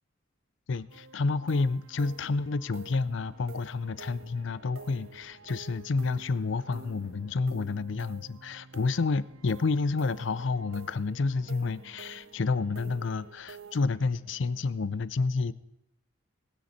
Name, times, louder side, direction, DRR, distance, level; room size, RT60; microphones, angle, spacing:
voice 1, 0.7-15.5, left 4 dB, 60° left, 18 dB, 0.5 m, -29 dB
sound 1, 0.9-13.9, right 5 dB, 90° right, 0.6 m, -50 dB
sound 2, 2.0-7.6, equal, 30° left, 1.7 m, -61 dB
sound 3, 3.3-14.7, right 1 dB, 55° right, 2.1 m, -59 dB
20.0 x 9.4 x 4.2 m, 0.87 s
head